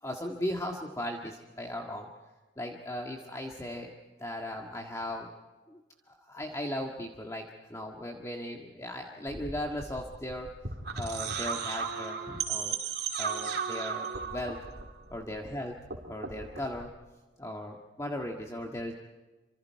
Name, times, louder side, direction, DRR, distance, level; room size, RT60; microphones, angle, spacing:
voice 1, 0.0-2.1 2.6-3.9 4.2-5.3 5.7-5.8 6.1-10.5 11.0-12.8 13.1-14.6 15.1-15.8 16.1-16.9 17.4-18.9, left 1 dB, 15° left, 0 dB, 1.7 m, -37 dB
sound 1, 9.3-15.5 15.8-16.8, right 6 dB, 55° right, 3.0 m, -36 dB
28.5 x 26.5 x 4.7 m, 1.2 s
head